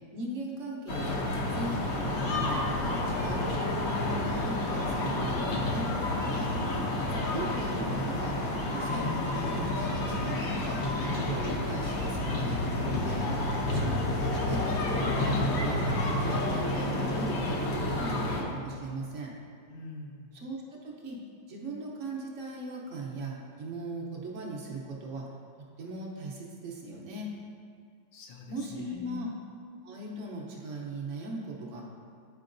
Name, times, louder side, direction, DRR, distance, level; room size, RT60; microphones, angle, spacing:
voice 1, 0.1-5.9 7.3-8.4 8.7-13.3 13.7-15.8 16.2-19.3 20.3-21.2 21.5-25.3 25.6-27.3 28.5-29.3 29.8-31.8, right 2 dB, 60° right, -2 dB, 0.8 m, -38 dB
sound 1, 0.9-18.4, left 2 dB, 60° left, 1.0 m, -30 dB
voice 2, 6.3-6.7 19.7-20.4 28.1-29.2, left 1 dB, 75° left, 1 dB, 1.4 m, -45 dB
9.1 x 4.5 x 2.6 m, 2.2 s
omnidirectional pair, 2.1 m